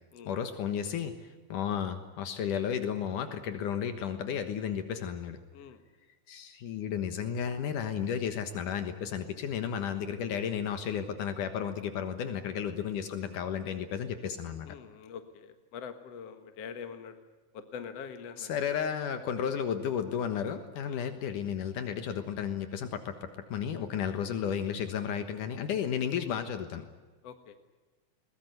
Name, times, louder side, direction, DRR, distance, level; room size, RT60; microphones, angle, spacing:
voice 1, 0.3-1.1 1.5-5.4 6.3-14.7 18.4-26.9, left 8 dB, 75° left, 8 dB, 2.9 m, -33 dB
voice 2, 14.7-17.1 17.5-18.5 20.8-21.1 26.2-26.3 27.2-27.6, left 7 dB, 55° left, 8 dB, 2.3 m, -44 dB
21.5 x 21.5 x 9.5 m, 1.2 s
omnidirectional pair, 3.7 m